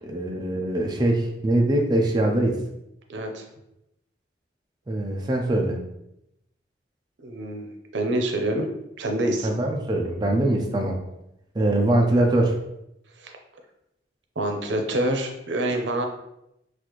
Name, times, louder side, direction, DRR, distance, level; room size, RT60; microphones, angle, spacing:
voice 1, 0.0-2.6 4.9-5.8 9.4-11.0 11.6-12.6, right 1 dB, 25° right, 1 dB, 0.4 m, -22 dB
voice 2, 3.1-3.4 7.2-8.7 9.0-9.5 13.2-13.3 14.4-16.1, right 1 dB, 90° right, 4 dB, 0.6 m, -26 dB
4.0 x 2.4 x 3.0 m, 0.83 s
head